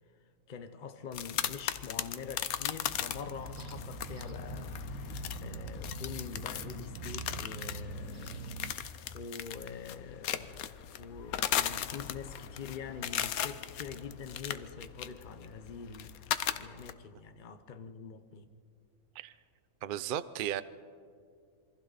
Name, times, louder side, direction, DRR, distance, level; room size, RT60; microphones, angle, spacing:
voice 1, 0.5-5.1 5.4-8.6 9.1-10.7 11.0-16.2 16.5-18.5, left 6 dB, 40° left, 1.0 m, -45 dB
sound 1, 1.1-16.9, left 10 dB, 85° left, 1.2 m, -38 dB
sound 2, 2.9-8.7, right 3 dB, 75° right, 1.5 m, -43 dB
voice 2, 19.8-20.6, right 10 dB, 55° right, 0.6 m, -35 dB
27.0 x 24.0 x 4.1 m
omnidirectional pair, 1.5 m